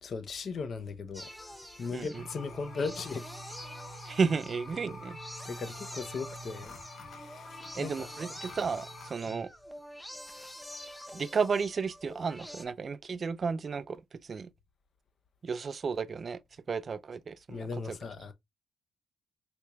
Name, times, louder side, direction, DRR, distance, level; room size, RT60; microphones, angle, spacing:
voice 1, 0.0-1.3 1.8-3.2 5.4-6.8 7.1-8.1 9.3-9.4 17.5-18.3, left 4 dB, 50° left, 0.6 m, -38 dB
sound 1, 1.1-12.7, equal, 5° left, 0.6 m, -47 dB
sound 2, 2.1-9.1, left 1 dB, 65° left, 1.0 m, -47 dB
voice 2, 4.1-5.2 7.8-9.5 11.1-14.0 14.3-14.5 15.4-16.4 16.7-17.7, right 5 dB, 40° right, 0.3 m, -32 dB
4.4 x 2.9 x 2.2 m
cardioid pair, 90°, 0 cm